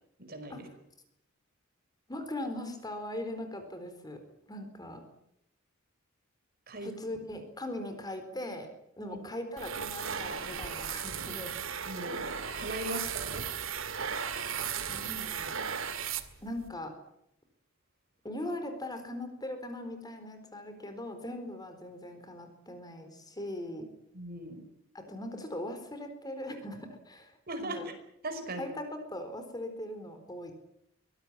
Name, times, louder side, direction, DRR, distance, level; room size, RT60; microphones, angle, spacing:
voice 1, 0.2-0.7 6.7-6.9 9.0-9.2 11.9-12.3 12.6-13.4 24.1-24.6 27.5-27.9 28.2-28.7, right 1 dB, 45° right, 8 dB, 5.2 m, -39 dB
voice 2, 2.1-4.2 4.5-5.0 6.8-8.7 9.0-11.6 14.9-15.6 16.4-16.9 18.2-23.9 24.9-27.3 27.6-27.9 28.6-30.5, left 1 dB, 20° left, 7 dB, 4.2 m, -40 dB
sound 1, 9.6-16.7, right 7 dB, 70° right, 2.1 m, -36 dB
24.0 x 19.0 x 8.9 m, 0.79 s
head